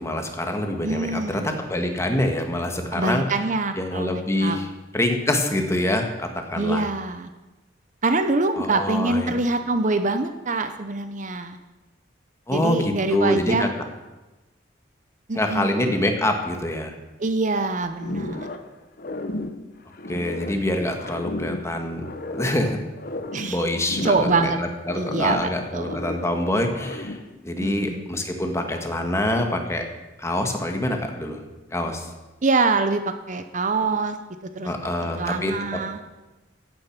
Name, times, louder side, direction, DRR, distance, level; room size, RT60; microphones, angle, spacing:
voice 1, 0.0-3.3 3.8-4.7 4.9-6.9 8.6-9.3 12.5-13.7 15.3-16.9 20.1-22.0 22.3-22.8 23.5-29.8 30.2-31.4 31.7-32.1 34.6-35.8, left 1 dB, 15° left, 4 dB, 1.6 m, -25 dB
voice 2, 0.8-1.5 2.9-4.6 6.5-7.3 8.0-11.6 12.5-13.7 15.3-16.0 17.2-18.5 23.3-23.6 24.0-24.6 24.9-26.0 27.6-28.1 32.4-33.0 33.3-34.2 34.4-34.7 35.0-36.0, right 3 dB, 45° right, 9 dB, 0.8 m, -25 dB
sound 1, 18.0-18.7 19.0-20.6 21.0-22.6 23.0-24.6 24.8-26.4 26.7-27.4, left 1 dB, 50° left, 1.0 m, -33 dB
15.0 x 9.1 x 6.0 m, 1.1 s
head